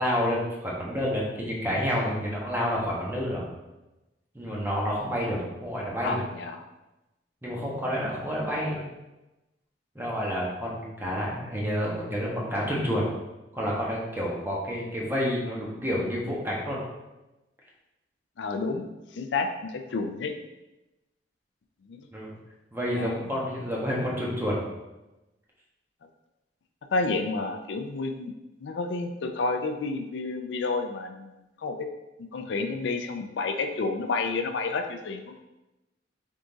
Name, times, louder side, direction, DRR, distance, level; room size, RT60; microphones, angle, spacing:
voice 1, 0.0-3.4 4.3-6.2 7.4-8.8 9.9-13.1 13.5-16.8 22.1-22.3 22.7-24.6, equal, 10° right, -4 dB, 1.1 m, -29 dB
voice 2, 6.0-6.6 8.3-8.5 18.4-18.9 19.1-20.3 21.9-22.1 22.9-23.2 26.9-28.3 28.6-31.3 31.6-31.9 32.3-35.4, left 3 dB, 75° left, 6 dB, 0.4 m, -30 dB
3.8 x 3.6 x 3.9 m, 1.0 s
head